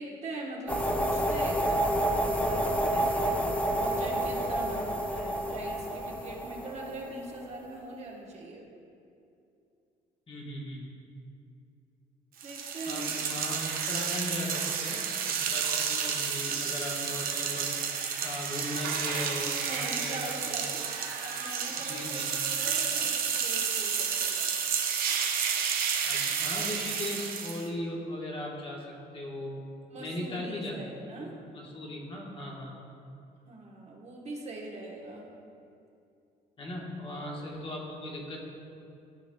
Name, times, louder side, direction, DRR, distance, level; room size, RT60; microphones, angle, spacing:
voice 1, 0.0-3.4 3.8-8.7 12.4-13.2 19.6-20.8 21.2-24.5 29.9-31.4 33.5-35.3, right 2 dB, 40° right, -2 dB, 1.2 m, -41 dB
sound 1, 0.7-7.6, right 1 dB, 10° left, 0.5 m, -29 dB
voice 2, 10.3-10.8 12.8-17.7 18.2-20.6 21.8-22.4 26.0-29.6 30.0-30.8 31.1-32.7 36.6-38.4, left 1 dB, 30° left, -2 dB, 1.3 m, -38 dB
sound 2, 12.4-27.7, right 7 dB, 60° right, 0.7 m, -31 dB
13.0 x 4.8 x 2.2 m, 2.6 s
cardioid pair, 110°, 17 cm